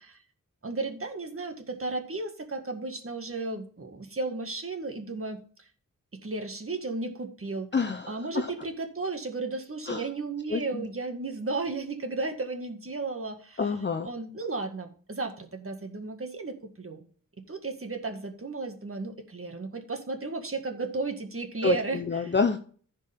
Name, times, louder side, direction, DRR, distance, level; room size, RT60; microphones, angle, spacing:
voice 1, 0.6-5.4 6.1-7.7 8.1-13.7 14.0-17.1 17.5-22.4, right 3 dB, 40° right, 5 dB, 1.9 m, -34 dB
voice 2, 7.7-8.5 9.9-10.0 10.5-10.9 13.6-14.1 21.6-22.6, left 5 dB, 35° left, 6 dB, 0.8 m, -28 dB
15.0 x 5.4 x 3.6 m, 0.44 s
wide cardioid pair, 85°, 33 cm